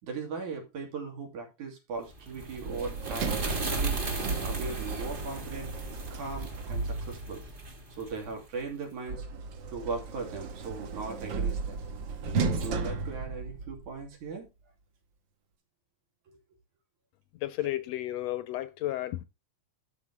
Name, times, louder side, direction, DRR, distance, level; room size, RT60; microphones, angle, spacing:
voice 1, 0.0-4.0 4.4-5.7 6.1-7.5 8.0-9.3 9.7-11.8 12.3-14.5 16.3-16.4, right 4 dB, 90° right, 4.2 m, -38 dB
sound 1, 2.1-8.7, right 2 dB, 30° right, 1.1 m, -38 dB
Sliding door, 2.6-7.5 9.1-14.0, right 4 dB, 60° right, 1.3 m, -34 dB
voice 2, 17.3-19.3, left 15 dB, 80° left, 1.6 m, -33 dB
12.5 x 5.4 x 3.5 m
omnidirectional pair, 3.4 m